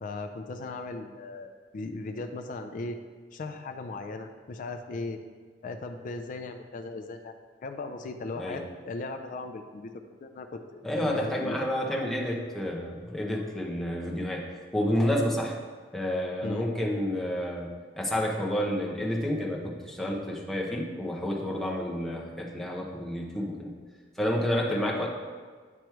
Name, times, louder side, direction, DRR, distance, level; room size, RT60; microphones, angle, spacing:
voice 1, 0.0-3.0 3.3-5.2 5.6-7.3 7.6-9.9 10.2-11.7 16.4-16.7 24.7-25.1, left 3 dB, 45° left, 6 dB, 0.4 m, -37 dB
voice 2, 10.8-14.4 14.7-15.6 15.9-17.7 18.0-23.7 24.2-25.1, equal, ahead, -3 dB, 0.8 m, -29 dB
9.0 x 3.1 x 4.6 m, 1.5 s
head